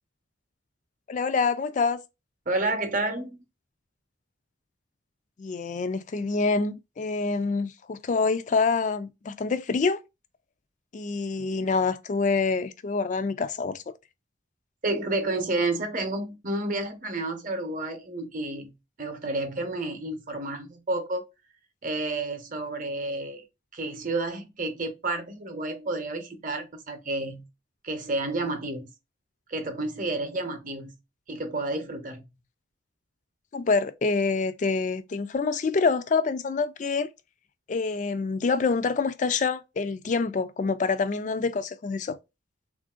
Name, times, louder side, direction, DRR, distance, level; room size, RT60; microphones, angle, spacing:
voice 1, 1.1-2.0 5.4-10.0 10.9-13.8 33.5-37.1 37.7-42.2, left 4 dB, 40° left, 0.3 m, -26 dB
voice 2, 2.5-3.4 14.8-18.7 19.0-21.2 21.8-23.5 23.7-27.5 27.8-28.9 29.5-30.9 31.3-32.3, right 2 dB, 45° right, 0.8 m, -30 dB
3.5 x 2.5 x 2.3 m
head